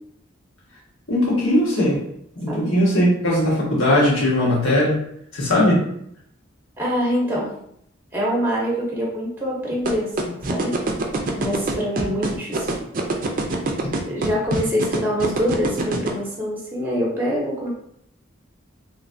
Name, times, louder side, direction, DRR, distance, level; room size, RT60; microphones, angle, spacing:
voice 1, 1.1-2.0 2.3-5.0 5.3-5.8, left 1 dB, 85° left, -5 dB, 1.3 m, -19 dB
voice 2, 6.8-7.5 8.1-10.7 11.3-12.7 14.0-17.7, equal, 10° right, -4 dB, 0.7 m, -25 dB
sound 1, 9.8-16.1, right 2 dB, 45° right, 0.4 m, -23 dB
3.2 x 3.0 x 2.6 m, 0.72 s
head